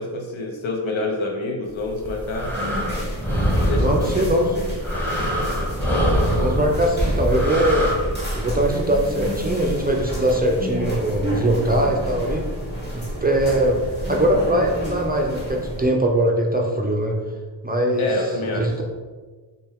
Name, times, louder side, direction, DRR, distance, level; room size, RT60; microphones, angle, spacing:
voice 1, 0.0-2.6 3.5-4.7 18.0-18.7, left 2 dB, 70° left, 1 dB, 0.8 m, -27 dB
sound 1, 1.9-7.9, equal, 5° left, 0.9 m, -24 dB
sound 2, 2.5-15.9, equal, 20° left, 1.2 m, -29 dB
voice 2, 3.8-4.5 6.4-7.9 8.4-12.4 12.9-17.2 17.6-18.1 18.5-18.8, right 1 dB, 20° right, 0 dB, 0.4 m, -21 dB
4.2 x 2.3 x 3.5 m, 1.4 s
cardioid pair, 70°, 49 cm